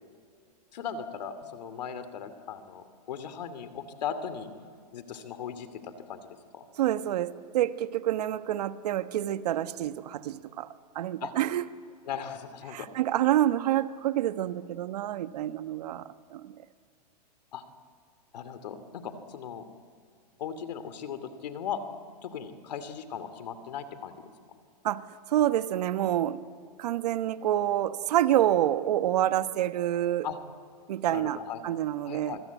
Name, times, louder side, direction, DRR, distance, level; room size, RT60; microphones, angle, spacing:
voice 1, 0.7-4.5 4.9-6.2 6.5-6.7 11.2-11.3 12.1-12.9 17.5-17.6 18.3-19.6 20.4-21.8 22.2-24.3 30.2-30.4 31.1-31.6 32.1-32.4, left 8 dB, 75° left, 11 dB, 2.6 m, -38 dB
voice 2, 6.8-10.7 10.9-11.7 12.7-16.5 24.8-26.4 26.8-30.3 30.9-32.4, right 12 dB, 70° right, 12 dB, 1.2 m, -28 dB
26.5 x 21.5 x 8.3 m, 2.3 s
hypercardioid pair, 135°, 21 cm